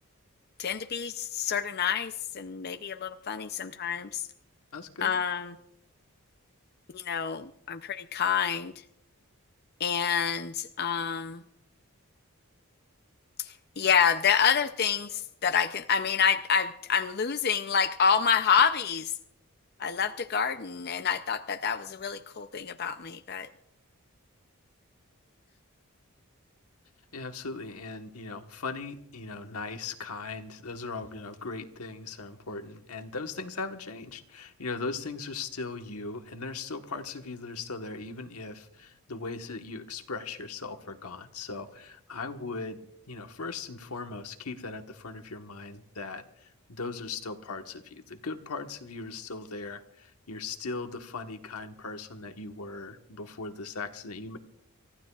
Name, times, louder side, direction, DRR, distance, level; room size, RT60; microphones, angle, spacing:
voice 1, 0.6-4.3 5.0-5.6 6.9-8.7 9.8-11.4 13.4-19.1 19.8-23.5, left 7 dB, 45° left, 9 dB, 0.5 m, -28 dB
voice 2, 4.7-5.2 27.1-42.8 43.1-54.4, left 3 dB, 85° left, 6 dB, 1.3 m, -39 dB
29.0 x 15.0 x 2.4 m, 0.78 s
head